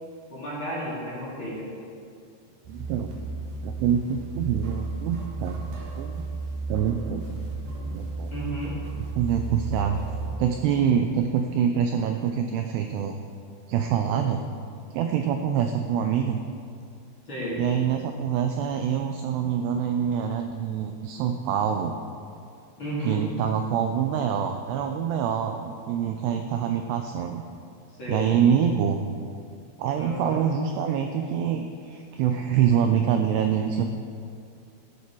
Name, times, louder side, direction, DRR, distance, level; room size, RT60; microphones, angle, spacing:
voice 1, 0.3-1.7 8.3-8.8 17.3-17.6 22.8-23.3 28.0-28.3 30.0-30.4, equal, 35° left, -9 dB, 2.7 m, -32 dB
sound 1, 2.6-10.4, right 3 dB, 60° right, 3.3 m, -34 dB
voice 2, 2.7-3.1 3.6-5.6 6.0-6.2 6.7-7.3 7.9-8.3 9.0-10.0 10.4-13.2 13.7-14.4 14.9-16.4 17.6-22.0 23.0-27.4 28.1-29.0 29.8-33.8, right 8 dB, 85° right, 5 dB, 2.4 m, -25 dB
14.0 x 8.4 x 4.6 m, 2.4 s
omnidirectional pair, 5.4 m